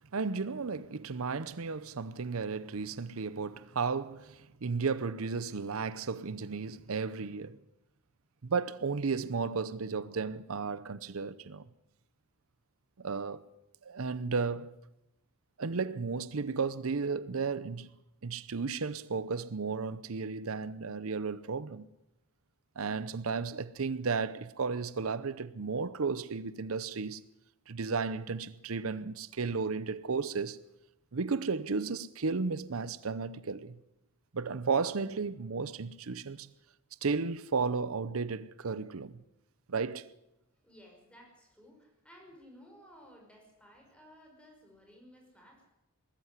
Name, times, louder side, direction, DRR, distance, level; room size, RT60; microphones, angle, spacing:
voice 1, 0.1-7.6 8.4-11.6 13.0-13.4 13.8-14.8 15.6-17.9 18.2-21.9 22.8-27.2 27.7-30.6 31.1-33.8 34.3-36.5 37.0-39.2 39.7-40.1, right 4 dB, 80° right, 0.7 m, -34 dB
voice 2, 40.6-45.7, equal, 5° left, 5.5 m, -57 dB
20.0 x 14.0 x 9.8 m
head